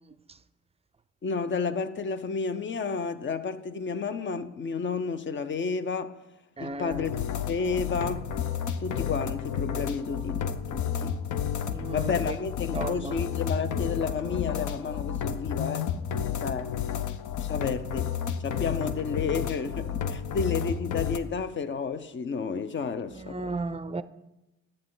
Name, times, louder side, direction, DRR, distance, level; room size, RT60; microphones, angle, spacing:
voice 1, 1.2-6.1 6.6-7.1 7.5-8.3 8.8-11.2 11.9-15.9 16.4-16.7 17.4-18.2 18.4-23.5, left 5 dB, 40° left, 0.7 m, -31 dB
voice 2, 6.6-7.1 11.7-12.3 12.7-13.2 23.1-24.0, right 3 dB, 20° right, 0.5 m, -34 dB
sound 1, 6.9-21.2, left 8 dB, 75° left, 0.7 m, -31 dB
12.0 x 8.7 x 3.9 m
cardioid pair, 90°, 30 cm